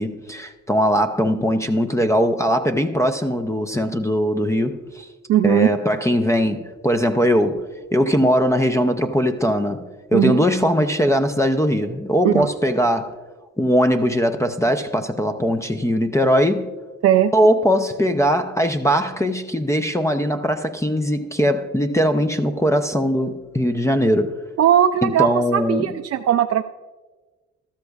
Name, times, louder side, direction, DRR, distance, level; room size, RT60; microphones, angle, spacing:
voice 1, 0.0-5.1 5.4-7.6 7.9-9.8 10.1-13.2 13.6-16.7 17.3-24.3 25.0-25.9, equal, 10° left, 0.5 m, -20 dB
voice 2, 5.3-5.7 10.1-10.4 12.2-12.5 17.0-17.3 24.6-26.6, right 10 dB, 55° right, 0.4 m, -18 dB
13.0 x 13.0 x 2.4 m
cardioid pair, 90°, 30 cm